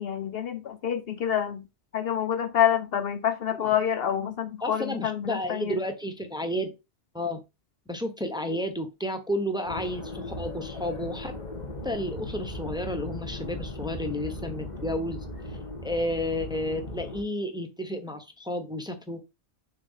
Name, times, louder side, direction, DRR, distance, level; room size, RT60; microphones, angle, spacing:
voice 1, 0.0-1.7 1.9-5.8, left 9 dB, 65° left, 0.7 m, -27 dB
voice 2, 4.6-6.7 7.1-7.4 7.9-11.3 11.8-15.2 15.8-19.2, left 1 dB, 5° right, 0.8 m, -31 dB
sound 1, 9.6-17.2, left 2 dB, 40° left, 1.5 m, -37 dB
6.9 x 2.8 x 5.5 m
omnidirectional pair, 1.2 m